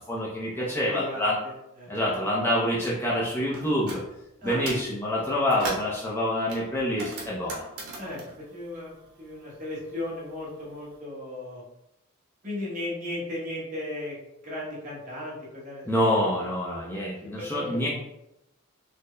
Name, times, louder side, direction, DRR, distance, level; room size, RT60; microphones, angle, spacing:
voice 1, 0.0-1.4 1.9-4.0 4.4-7.7 15.9-17.9, left 1 dB, 10° left, -6 dB, 0.4 m, -27 dB
voice 2, 0.6-2.3 4.4-4.6 8.0-11.6 12.4-14.2 14.4-16.5 17.3-17.8, left 1 dB, 35° right, -5 dB, 1.0 m, -36 dB
sound 1, 3.5-4.0 4.4-4.9 5.3-6.0 6.5-9.4 9.7-10.8, right 2 dB, 80° right, 0.9 m, -39 dB
4.1 x 2.0 x 3.2 m, 0.87 s
head